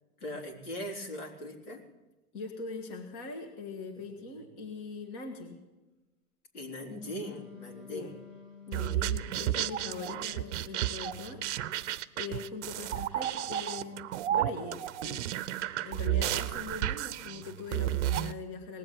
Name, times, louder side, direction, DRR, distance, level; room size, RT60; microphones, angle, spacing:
voice 1, 0.2-1.8 4.0-4.3 6.5-8.2, equal, 70° left, -1 dB, 3.9 m, -40 dB
voice 2, 2.3-5.6 7.9-8.1 8.7-15.2 15.8-18.8, left 4 dB, 35° left, 2 dB, 2.0 m, -42 dB
Wind instrument woodwind instrument, 6.9-11.7, left 8 dB, 20° left, 2.0 m, -50 dB
sound 1, 8.7-18.3, right 12 dB, 50° right, 0.7 m, -32 dB
19.5 x 7.7 x 8.9 m, 1.1 s
hypercardioid pair, 130°, 46 cm